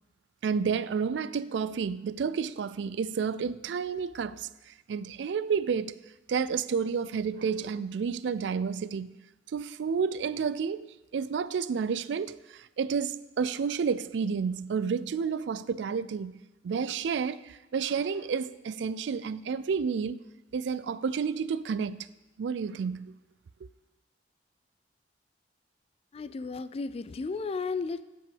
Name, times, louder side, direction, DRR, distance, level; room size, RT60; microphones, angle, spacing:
voice 1, 0.4-6.0 6.3-9.1 9.5-16.4 16.6-20.2 20.5-22.1 22.4-23.2, right 6 dB, 75° right, 0.3 m, -30 dB
voice 2, 26.1-28.0, left 4 dB, 35° left, 0.3 m, -34 dB
7.6 x 5.6 x 7.0 m
head